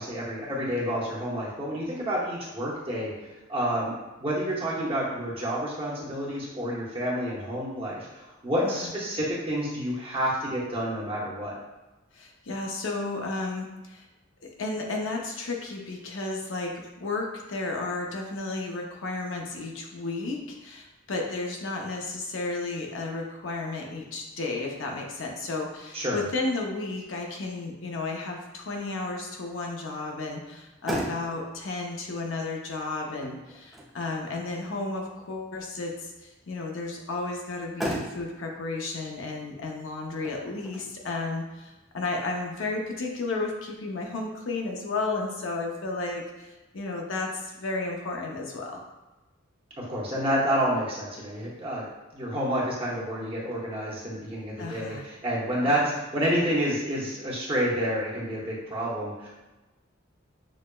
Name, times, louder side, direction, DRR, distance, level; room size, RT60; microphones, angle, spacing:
voice 1, 0.0-3.1 3.5-11.6 25.9-26.2 49.8-51.9 52.1-59.3, equal, 30° right, -6 dB, 0.9 m, -29 dB
voice 2, 12.1-14.0 14.6-48.8 54.6-55.0 55.6-56.0, left 3 dB, 70° left, 1 dB, 0.6 m, -33 dB
Motor vehicle (road), 30.5-43.4, equal, ahead, 0.4 m, -40 dB
6.1 x 2.0 x 2.2 m, 1.1 s
head